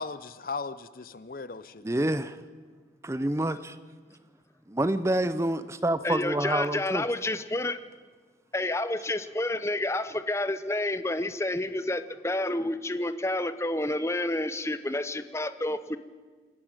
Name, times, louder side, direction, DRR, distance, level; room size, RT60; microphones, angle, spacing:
voice 1, 0.0-2.0, left 4 dB, 50° left, 15 dB, 0.7 m, -37 dB
voice 2, 1.8-2.4 3.0-3.8 4.7-7.0, right 1 dB, 15° right, 14 dB, 0.6 m, -27 dB
voice 3, 6.0-7.8 8.5-16.0, left 1 dB, 15° left, 12 dB, 0.8 m, -29 dB
26.5 x 11.0 x 9.0 m, 1.4 s
head